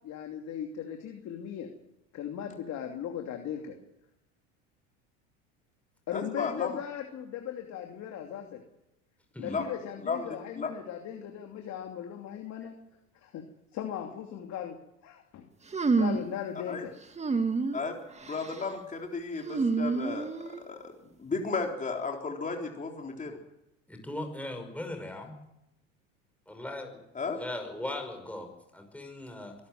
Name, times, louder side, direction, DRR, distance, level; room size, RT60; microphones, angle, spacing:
voice 1, 0.0-1.7 2.1-3.8 6.1-8.6 9.4-12.7 13.1-13.4 13.7-14.8 15.0-15.4 15.9-16.9, left 9 dB, 50° left, 3 dB, 2.8 m, -38 dB
voice 2, 6.1-6.8 9.5-9.6 10.0-10.2 10.6-10.7 16.7-16.8 17.7-20.3 20.7-23.4 27.2-27.4, left 4 dB, 20° left, 1 dB, 3.8 m, -34 dB
sound 1, 15.7-16.3 17.2-17.8 18.2-18.6 19.4-20.6, right 4 dB, 20° right, 1.9 m, -28 dB
voice 3, 23.9-25.4 26.5-27.0 27.4-29.6, left 1 dB, 5° left, 4 dB, 5.7 m, -39 dB
23.0 x 13.5 x 9.3 m, 0.88 s
hypercardioid pair, 90°, 36 cm